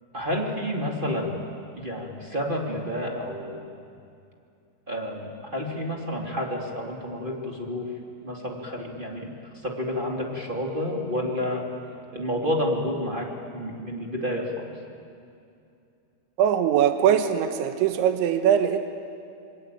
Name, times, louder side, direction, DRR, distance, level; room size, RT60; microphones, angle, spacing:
voice 1, 0.1-1.4 1.7-3.8 4.9-11.7 12.1-14.7, equal, 25° right, 0 dB, 1.1 m, -30 dB
voice 2, 16.4-18.8, right 9 dB, 75° right, 7 dB, 3.3 m, -21 dB
27.0 x 23.5 x 9.0 m, 2.6 s
omnidirectional pair, 5.6 m